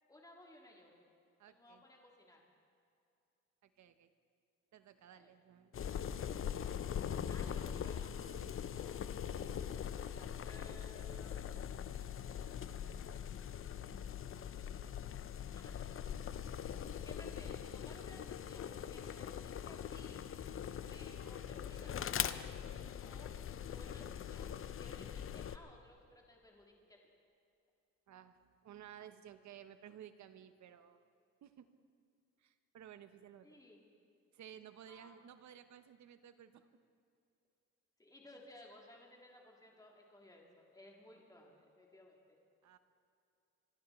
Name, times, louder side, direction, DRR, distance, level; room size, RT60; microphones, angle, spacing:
voice 1, 0.1-0.9 1.5-2.4 5.2-5.3 7.3-8.1 8.5-9.0 9.9-12.0 15.5-15.7 17.0-20.3 20.9-22.4 23.0-23.3 23.7-27.0 33.4-33.8 34.9-35.2 38.0-42.4, left 1 dB, 10° left, -2 dB, 3.4 m, -59 dB
voice 2, 1.4-1.8 3.6-4.1 4.7-5.8 8.2-8.9 28.1-31.0 31.4-31.7 32.4-33.6 34.3-36.7 42.6-42.8, right 9 dB, 65° right, 10 dB, 1.0 m, -56 dB
sound 1, 5.7-25.6, left 9 dB, 45° left, 0.7 m, -42 dB
26.5 x 12.0 x 4.4 m, 2.6 s
cardioid pair, 90°, 30 cm